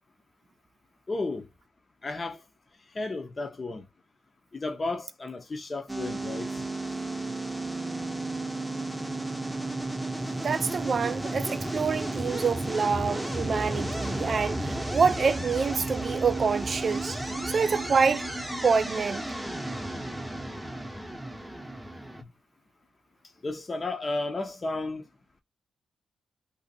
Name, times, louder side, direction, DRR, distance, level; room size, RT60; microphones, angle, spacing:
voice 1, 1.1-1.5 2.0-2.4 2.9-3.8 4.5-6.6 23.4-25.0, left 2 dB, 40° left, 0.7 m, -33 dB
sound 1, 5.9-22.2, right 1 dB, 5° right, 0.8 m, -33 dB
voice 2, 10.4-17.2 17.5-18.3 18.6-19.2, right 5 dB, 60° right, 0.3 m, -26 dB
2.6 x 2.4 x 4.0 m
supercardioid pair, 55°, 0 cm